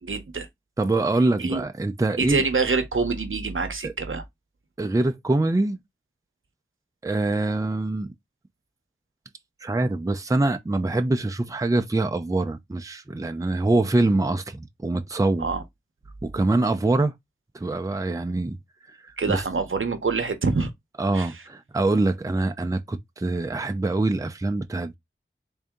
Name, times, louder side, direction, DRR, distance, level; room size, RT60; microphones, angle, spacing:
voice 1, 0.0-0.5 1.4-1.6 2.2-4.2 15.4-15.6 19.2-20.7 21.1-21.4, right 4 dB, 75° right, 0.7 m, -26 dB
voice 2, 0.8-2.4 3.8-3.9 4.8-5.8 7.0-8.1 9.6-15.5 16.2-17.1 17.5-18.6 18.9-19.4 21.0-24.9, right 2 dB, 15° right, 0.5 m, -24 dB
3.8 x 2.7 x 3.5 m
wide cardioid pair, 50°, 21 cm